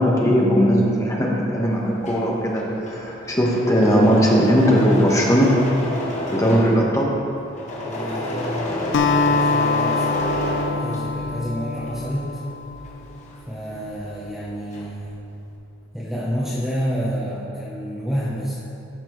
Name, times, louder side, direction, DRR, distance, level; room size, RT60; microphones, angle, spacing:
voice 1, 0.0-5.5 6.3-7.1, equal, 15° left, -3 dB, 1.2 m, -18 dB
Engine / Mechanisms, 1.8-11.4 11.7-14.1 14.4-15.1, left 1 dB, 40° left, 1.2 m, -29 dB
voice 2, 6.3-6.7 7.8-12.4 13.5-15.2 15.9-18.6, equal, ahead, -7 dB, 0.9 m, -29 dB
Acoustic guitar, 8.9-13.4, left 4 dB, 65° left, 0.5 m, -24 dB
13.5 x 6.0 x 3.1 m, 2.7 s
head